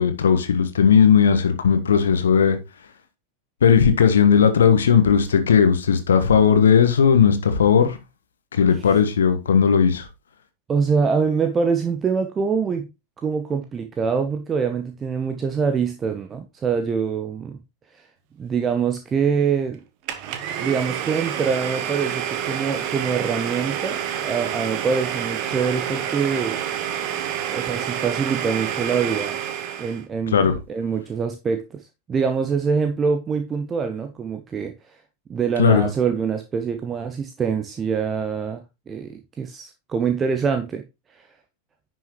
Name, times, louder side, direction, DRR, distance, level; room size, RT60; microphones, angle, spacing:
voice 1, 0.0-2.6 3.6-8.0 8.5-10.0 30.3-30.6 35.6-35.8, left 7 dB, 65° left, 1.4 m, -17 dB
voice 2, 10.7-12.9 13.2-17.6 17.9-18.1 18.4-19.8 20.6-26.6 27.5-29.4 29.8-34.7 35.3-40.8 41.1-41.3, right 6 dB, 20° right, 0.9 m, -24 dB
Domestic sounds home sounds, 20.1-30.0, right 9 dB, 45° right, 1.4 m, -28 dB
10.5 x 6.4 x 3.1 m
figure-of-eight pair, 90°, 0 cm